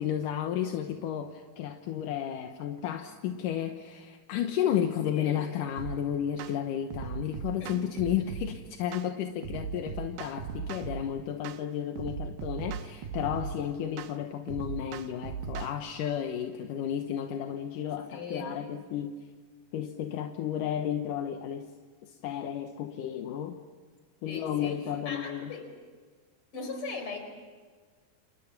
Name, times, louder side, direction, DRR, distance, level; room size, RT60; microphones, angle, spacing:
voice 1, 0.0-19.2 19.7-21.7 22.0-23.6 24.2-25.5, left 10 dB, 70° left, 5 dB, 2.2 m, -32 dB
voice 2, 5.0-5.4 7.6-7.8 18.1-18.6 24.2-25.8 26.5-27.2, left 3 dB, 35° left, 5 dB, 5.0 m, -39 dB
sound 1, 5.8-6.0 6.4-6.6 6.9-8.5 8.9-9.1 9.4-11.0 11.4-11.6 12.0-13.6 14.0-14.1 14.5-15.7, right 7 dB, 70° right, 2.9 m, -37 dB
29.5 x 29.0 x 6.0 m, 1.5 s
omnidirectional pair, 4.8 m